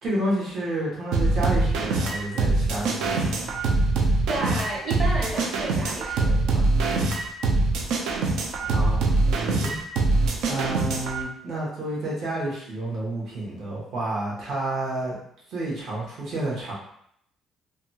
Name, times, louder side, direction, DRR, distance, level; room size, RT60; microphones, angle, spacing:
voice 1, 0.0-3.6 8.7-9.8 10.2-15.2 15.5-16.7, right 1 dB, 60° right, -5 dB, 1.1 m, -30 dB
sound 1, 1.1-11.2, right 3 dB, 75° right, 0.4 m, -23 dB
voice 2, 4.3-6.6, right 2 dB, 35° right, -4 dB, 0.9 m, -31 dB
2.7 x 2.2 x 2.7 m, 0.71 s
cardioid pair, 125°, 0 cm